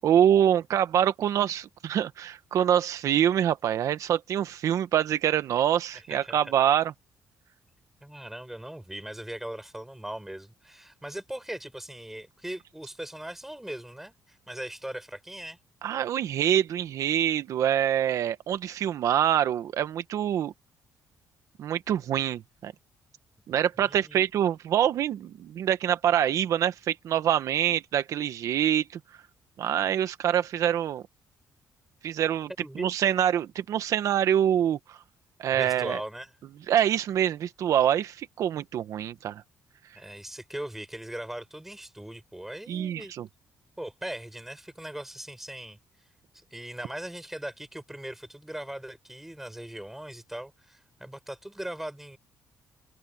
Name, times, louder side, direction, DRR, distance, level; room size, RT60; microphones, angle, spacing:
voice 1, 0.0-6.9 15.8-20.5 21.6-22.7 23.5-29.0 29.6-31.0 32.0-32.5 32.7-35.0 35.4-36.0 36.7-39.4 42.7-43.3, right 10 dB, 60° right, 1.5 m, -25 dB
voice 2, 5.9-6.5 8.0-15.6 23.8-24.2 32.6-32.9 35.5-36.3 39.9-43.1 43.8-45.8 46.3-52.2, right 1 dB, 5° right, 6.8 m, -39 dB
open air
cardioid pair, 165°, 6 cm